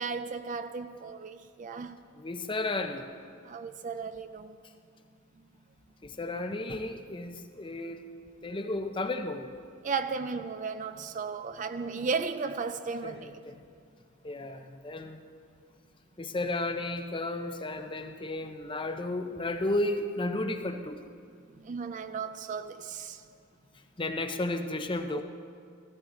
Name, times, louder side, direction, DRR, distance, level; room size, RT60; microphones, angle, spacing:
voice 1, 0.0-2.0 3.5-4.6 9.8-13.3 14.4-14.6 21.5-23.2 25.1-25.2, right 5 dB, 35° right, 0.4 m, -35 dB
voice 2, 2.2-3.1 6.0-8.0 8.4-9.5 13.0-13.5 14.2-15.2 16.2-21.0 24.0-25.2, left 2 dB, 25° left, 0.6 m, -33 dB
15.5 x 14.5 x 3.9 m
head